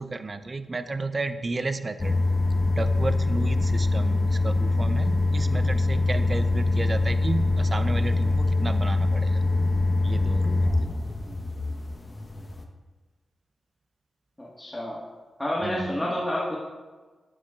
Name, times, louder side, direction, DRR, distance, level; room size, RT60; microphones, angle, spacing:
voice 1, 0.0-2.2 2.7-9.4 10.0-10.7 15.6-16.0, right 3 dB, 40° right, 10 dB, 0.6 m, -32 dB
sound 1, 2.0-12.6, left 2 dB, 35° left, 1.1 m, -24 dB
voice 2, 14.4-15.0 15.4-16.6, left 1 dB, 15° left, -5 dB, 1.6 m, -29 dB
11.0 x 9.5 x 2.5 m, 1.3 s
cardioid pair, 65°, 0 cm